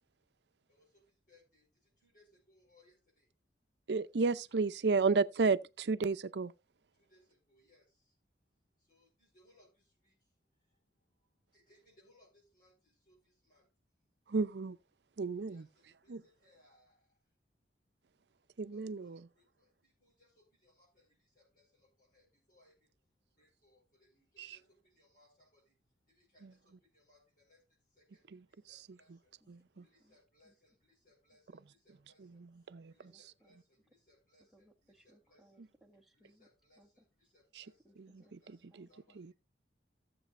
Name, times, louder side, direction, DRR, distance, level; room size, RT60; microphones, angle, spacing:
voice 1, 0.7-1.0 1.3-1.6 2.0-3.3 4.5-4.6 7.1-7.8 8.9-9.7 10.0-10.1 11.5-13.2 13.4-13.7 15.4-17.0 18.7-21.0 21.3-21.6 22.0-22.7 23.4-25.6 26.1-26.6 26.9-27.6 28.0-28.2 28.7-29.1 29.8-30.8 31.0-32.4 32.9-35.6 36.2-37.7 38.2-38.6 38.9-39.2, left 1 dB, 55° left, 4.7 m, -69 dB
voice 2, 3.9-6.5 14.3-14.8 15.2-15.7 16.1-16.2 18.6-19.3 24.4-24.6 26.4-26.5 28.3-28.4 29.5-29.9 32.2-32.9 37.6-37.7 38.0-38.9 39.1-39.3, right 4 dB, 65° right, 0.5 m, -33 dB
voice 3, 29.4-30.1 30.4-30.5 33.1-33.6 34.5-36.5 36.8-37.0 37.8-39.3, right 1 dB, ahead, 1.3 m, -68 dB
16.5 x 7.6 x 2.5 m
head